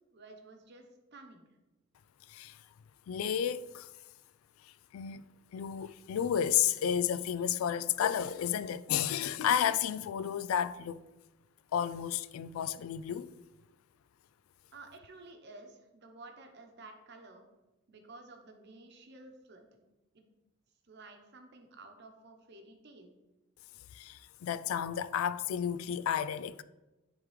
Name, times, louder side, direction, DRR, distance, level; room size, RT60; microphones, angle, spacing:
voice 1, 0.1-1.5 14.7-17.5 17.9-19.8 20.1-20.2 20.9-23.1, right 2 dB, 55° right, 0.9 m, -52 dB
voice 2, 2.3-2.6 3.1-3.9 4.6-5.2 5.5-11.0 11.7-13.3 23.9-26.6, left 9 dB, 90° left, 0.3 m, -32 dB
9.8 x 3.6 x 3.2 m
head